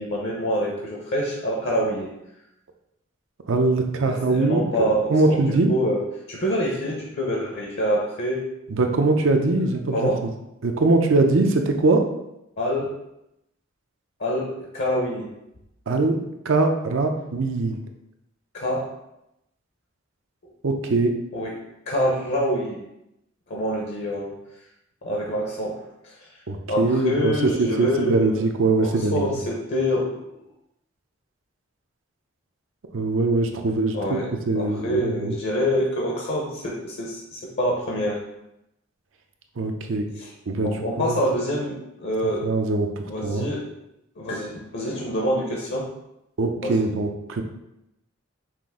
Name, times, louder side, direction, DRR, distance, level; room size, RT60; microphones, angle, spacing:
voice 1, 0.0-2.1 4.0-6.0 6.3-8.5 9.9-10.2 12.6-12.9 14.2-15.3 18.5-18.9 21.3-21.5 21.9-22.8 23.5-24.4 25.0-25.8 26.0-26.3 26.7-28.5 28.8-30.2 33.9-38.2 40.2-40.3 40.6-42.5 43.0-43.6 44.2-45.9 46.6-46.8, equal, 60° left, -2 dB, 0.8 m, -26 dB
voice 2, 3.5-5.7 8.7-10.3 10.6-12.1 15.9-17.8 20.6-21.2 26.5-29.4 32.9-34.2 34.5-35.3 39.6-40.1 40.5-41.2 42.4-43.5 46.4-47.4, right 3 dB, 70° right, 5 dB, 0.6 m, -22 dB
5.8 x 2.5 x 3.6 m, 0.86 s
head